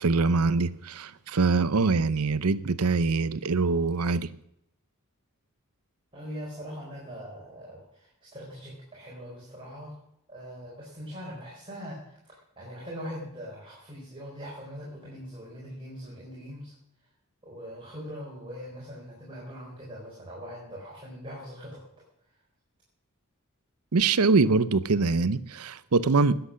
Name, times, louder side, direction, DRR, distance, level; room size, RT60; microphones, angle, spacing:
voice 1, 0.0-4.3 23.9-26.3, right 4 dB, 75° right, 0.7 m, -24 dB
voice 2, 6.1-9.9 10.3-16.7 17.4-21.8, equal, 25° right, 4.4 m, -41 dB
19.5 x 8.0 x 6.4 m
head